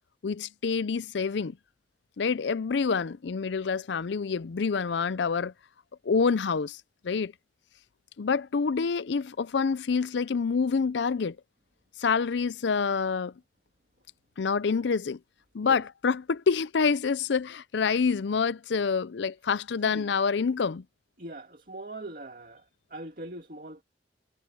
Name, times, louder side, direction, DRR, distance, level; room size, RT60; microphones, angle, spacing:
voice 1, 0.2-1.6 2.2-5.5 6.0-6.8 7.0-7.3 8.2-11.4 12.0-13.3 14.4-15.2 15.5-20.8, left 5 dB, 70° left, 0.5 m, -27 dB
voice 2, 21.2-22.6 22.9-23.8, right 1 dB, 45° right, 2.3 m, -41 dB
head